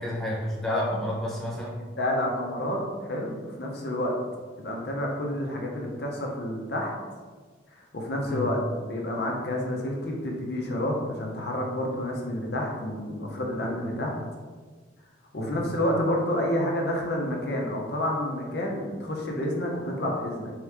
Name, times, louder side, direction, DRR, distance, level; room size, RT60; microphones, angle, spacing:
voice 1, 0.0-1.8 8.2-8.5 15.4-15.6, left 1 dB, ahead, -5 dB, 0.5 m, -31 dB
voice 2, 2.0-4.1 4.6-6.9 7.7-14.2 15.3-20.5, left 1 dB, 60° left, -1 dB, 0.7 m, -29 dB
3.6 x 3.0 x 3.4 m, 1.4 s
head